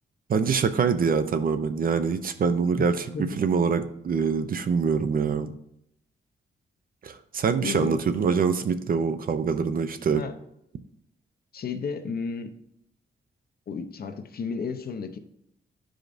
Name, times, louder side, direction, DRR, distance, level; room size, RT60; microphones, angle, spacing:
voice 1, 0.3-5.5 7.0-10.2, right 6 dB, 50° right, 10 dB, 0.5 m, -25 dB
voice 2, 7.6-8.0 10.1-10.3 11.5-12.5 13.7-15.2, left 5 dB, 50° left, 8 dB, 0.6 m, -32 dB
12.0 x 5.0 x 2.6 m, 0.77 s
wide cardioid pair, 160°, 20 cm